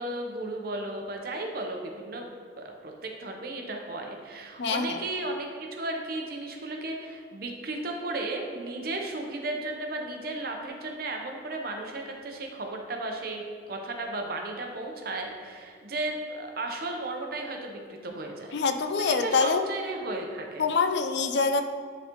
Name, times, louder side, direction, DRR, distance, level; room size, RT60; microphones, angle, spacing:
voice 1, 0.0-2.2 2.6-18.5 19.0-20.7, right 2 dB, 55° right, 2 dB, 0.8 m, -34 dB
voice 2, 4.6-5.0 18.5-19.7 20.6-21.7, left 4 dB, 65° left, 7 dB, 0.5 m, -25 dB
10.5 x 4.0 x 3.0 m, 2.1 s
head